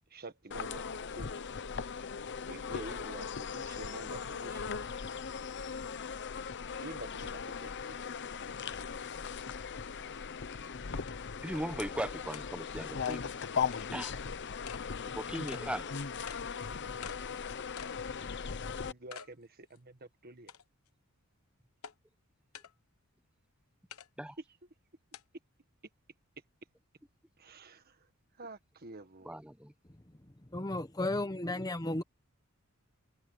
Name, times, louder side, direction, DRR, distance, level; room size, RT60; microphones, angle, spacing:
voice 1, 0.1-0.8 1.1-1.3 2.5-4.6 6.8-7.9 18.8-20.5 27.4-28.0 28.4-29.4, right 2 dB, 45° right, 1.6 m, -48 dB
sound 1, 0.5-18.9, left 6 dB, 55° left, 0.8 m, -39 dB
sound 2, 10.4-10.5 11.1-11.2 11.6-11.7 12.3-12.5 13.1-13.2 13.7-13.9 14.7-14.8 15.5-15.7 16.3-16.4 17.0-17.2 17.8-18.0 18.4-18.5 19.1-19.3 19.8-19.9 20.5-20.9 21.8-21.9 22.5-22.7 23.9-24.1 25.1-25.2, left 7 dB, 75° left, 1.1 m, -46 dB
voice 2, 11.4-13.4 13.9-14.1 15.2-15.9 24.2-24.4 29.2-29.7, right 1 dB, 5° right, 1.1 m, -38 dB
voice 3, 30.1-32.0, left 2 dB, 15° left, 1.1 m, -34 dB
head